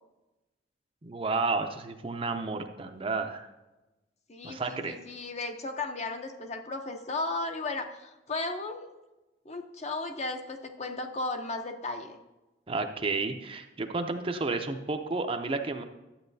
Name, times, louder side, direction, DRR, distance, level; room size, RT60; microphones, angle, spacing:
voice 1, 1.0-3.5 4.4-5.0 12.7-15.8, right 3 dB, 30° right, 6 dB, 0.5 m, -31 dB
voice 2, 4.3-9.0 9.4-12.2, left 3 dB, 35° left, 5 dB, 0.7 m, -35 dB
12.0 x 8.2 x 2.7 m, 1.0 s
head